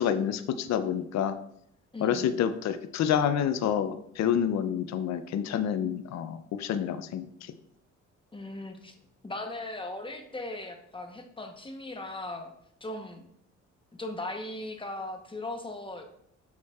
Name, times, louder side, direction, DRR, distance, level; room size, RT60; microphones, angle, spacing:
voice 1, 0.0-1.4 2.0-7.5, left 9 dB, 60° left, 11 dB, 0.5 m, -28 dB
voice 2, 1.9-2.3 8.3-8.9 9.2-12.5 12.8-13.2 13.9-16.1, left 2 dB, 15° left, 5 dB, 0.9 m, -38 dB
7.0 x 6.4 x 2.4 m, 0.71 s
cardioid pair, 90°, 30 cm